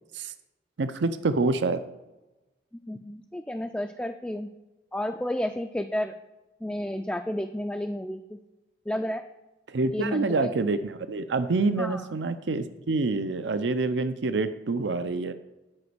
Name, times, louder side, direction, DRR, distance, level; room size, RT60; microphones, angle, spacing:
voice 1, 0.8-1.8 9.7-15.3, right 3 dB, 80° right, 11 dB, 0.6 m, -27 dB
voice 2, 2.8-4.5 4.9-6.1 6.6-8.4 8.9-9.2 9.9-10.5 11.8-12.0, left 1 dB, 5° left, 6 dB, 0.3 m, -31 dB
9.7 x 5.1 x 7.9 m, 1.1 s
head